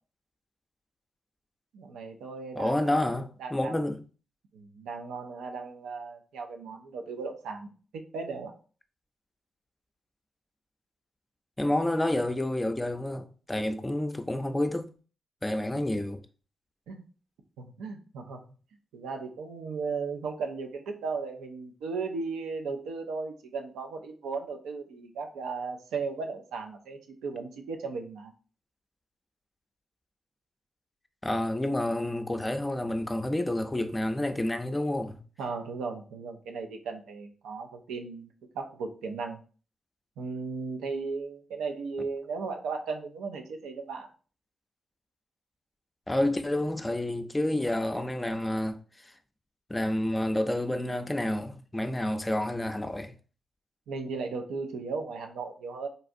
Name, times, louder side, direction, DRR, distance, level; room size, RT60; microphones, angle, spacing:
voice 1, 1.7-3.7 4.5-8.5 16.9-17.0 17.6-18.4 18.9-28.3 35.4-38.3 38.5-39.4 40.2-44.1 53.9-55.9, right 4 dB, 85° right, 0.5 m, -36 dB
voice 2, 2.6-4.0 11.6-14.9 15.4-16.2 31.2-35.2 46.1-49.1 49.7-53.1, left 1 dB, 20° left, 0.5 m, -29 dB
4.0 x 2.3 x 2.6 m
supercardioid pair, 45°, 0 cm